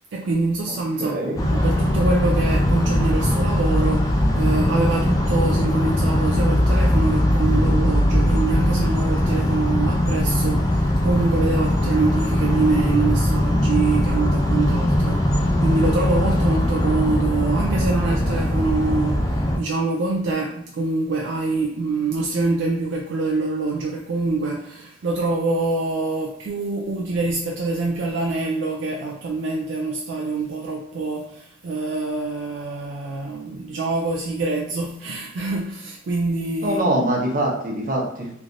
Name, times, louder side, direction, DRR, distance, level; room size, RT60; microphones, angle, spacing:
voice 1, 0.1-36.8, right 3 dB, 65° right, 0 dB, 0.3 m, -25 dB
voice 2, 1.0-1.4 36.6-38.3, right 1 dB, 40° right, -2 dB, 0.7 m, -23 dB
sound 1, 1.4-19.6, left 1 dB, 20° left, 0.3 m, -20 dB
3.1 x 2.5 x 2.5 m, 0.75 s
head